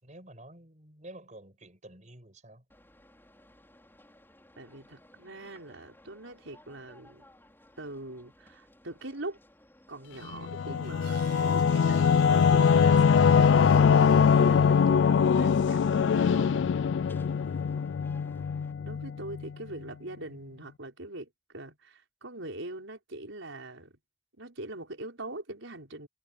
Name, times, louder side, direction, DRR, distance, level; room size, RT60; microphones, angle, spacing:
voice 1, 0.0-2.6, right 1 dB, 40° right, 6.4 m, -50 dB
sound 1, 2.7-18.7, left 1 dB, 10° left, 5.6 m, -59 dB
voice 2, 4.6-7.2 7.8-9.4 9.9-16.7 18.8-24.0 24.4-26.1, right 2 dB, 85° right, 4.9 m, -42 dB
Singing / Musical instrument, 10.3-19.5, left 6 dB, 65° left, 0.3 m, -22 dB
sound 2, 10.8-16.2, right 9 dB, 55° right, 3.8 m, -54 dB
head